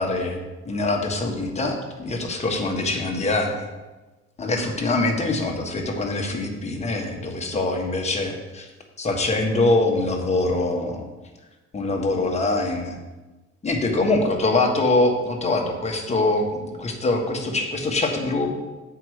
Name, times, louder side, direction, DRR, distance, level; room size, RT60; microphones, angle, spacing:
voice 1, 0.0-3.7 4.4-8.7 9.0-11.0 11.7-13.0 13.6-18.5, left 2 dB, 25° left, 1 dB, 1.4 m, -24 dB
7.7 x 4.8 x 6.5 m, 1.2 s
cardioid pair, 130°, 29 cm